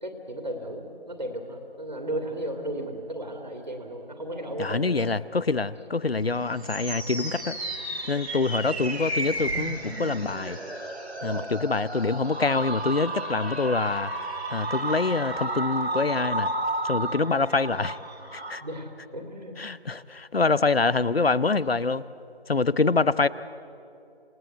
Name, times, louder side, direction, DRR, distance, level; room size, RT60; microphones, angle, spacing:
voice 1, 0.0-5.1 11.2-11.5 18.6-19.6 22.7-23.0, right 1 dB, 45° right, 4 dB, 2.6 m, -35 dB
voice 2, 4.6-7.6 8.1-10.6 11.2-14.1 14.5-16.5 16.8-18.0 18.3-18.6 19.6-22.0 22.5-23.3, left 3 dB, 65° left, 18 dB, 0.8 m, -25 dB
sound 1, 6.2-18.6, right 1 dB, 85° right, 3.2 m, -32 dB
28.0 x 19.0 x 8.2 m, 2.7 s
figure-of-eight pair, 170°, 32 cm